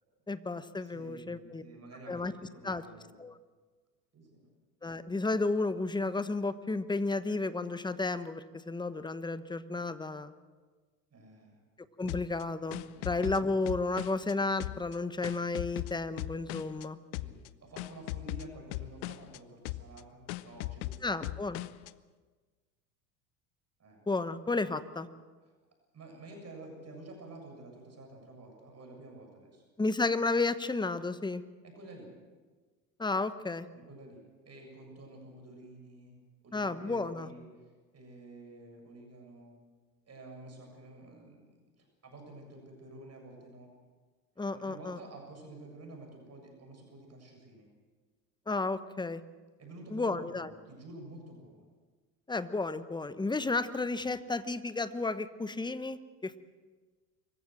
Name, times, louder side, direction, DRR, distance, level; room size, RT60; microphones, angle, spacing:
voice 1, 0.3-1.6 2.1-2.3 2.6-2.8 3.2-3.4 4.8-10.3 12.0-17.0 21.0-21.6 24.1-25.1 29.8-31.4 33.0-33.7 36.5-37.3 44.4-45.0 48.5-49.2 49.9-50.5 52.3-56.4, left 3 dB, 10° left, 13 dB, 1.1 m, -32 dB
voice 2, 0.8-3.2 4.1-4.4 11.1-11.6 12.9-13.2 17.2-21.5 23.8-24.0 24.6-24.7 25.4-25.6 25.9-29.6 31.6-32.1 33.7-36.2 36.4-37.5 37.9-39.5 40.1-41.5 41.8-43.7 44.5-47.7 49.6-51.7, right 2 dB, 30° right, 2 dB, 7.2 m, -50 dB
sound 1, 12.1-14.3 14.6-16.8 17.1-17.5 17.8-19.4 19.6-20.0 20.3-21.9, left 19 dB, 60° left, 0.8 m, -39 dB
24.5 x 15.0 x 7.7 m, 1.4 s
hypercardioid pair, 80°, 49 cm